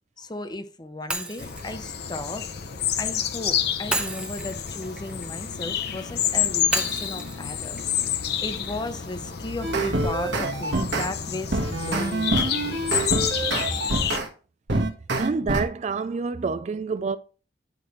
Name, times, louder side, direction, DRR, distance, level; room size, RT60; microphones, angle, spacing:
voice 1, 0.2-2.5 3.0-7.8 8.4-12.9 13.7-13.8, left 2 dB, 25° left, 0.8 m, -35 dB
Shatter, 1.1-3.2 3.9-6.0 6.7-8.8, right 1 dB, 5° right, 0.9 m, -33 dB
sound 1, 1.4-14.2, left 9 dB, 60° left, 0.8 m, -29 dB
sound 2, 9.6-11.1 11.5-14.3 14.7-15.6, right 2 dB, 75° right, 1.4 m, -26 dB
voice 2, 15.2-17.2, right 4 dB, 40° right, 0.3 m, -27 dB
10.5 x 4.9 x 3.1 m
head